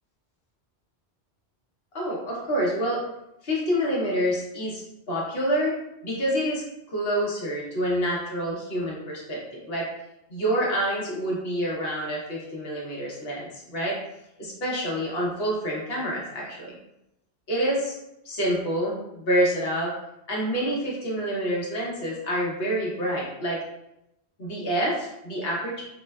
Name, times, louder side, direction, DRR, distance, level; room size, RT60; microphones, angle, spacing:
voice 1, 1.9-3.0 3.4-4.8 5.1-5.8 6.0-6.6 6.9-9.8 10.3-14.0 14.4-16.8 17.5-18.0 18.2-19.9 20.3-23.6 24.4-25.8, equal, 65° left, -4 dB, 1.1 m, -27 dB
4.2 x 2.1 x 2.2 m, 0.85 s
omnidirectional pair, 1.1 m